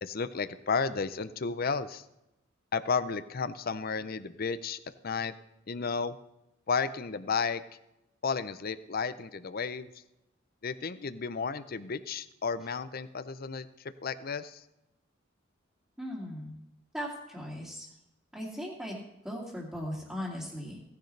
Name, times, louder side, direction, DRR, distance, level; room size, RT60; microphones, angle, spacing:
voice 1, 0.0-2.0 2.7-5.3 5.7-6.2 6.7-7.6 8.2-9.9 10.6-13.7 14.0-14.6, left 5 dB, 50° left, 14 dB, 0.6 m, -33 dB
voice 2, 16.0-16.6 16.9-17.9 18.3-20.8, equal, 5° right, -7 dB, 2.3 m, -38 dB
17.0 x 10.5 x 3.3 m, 0.89 s
head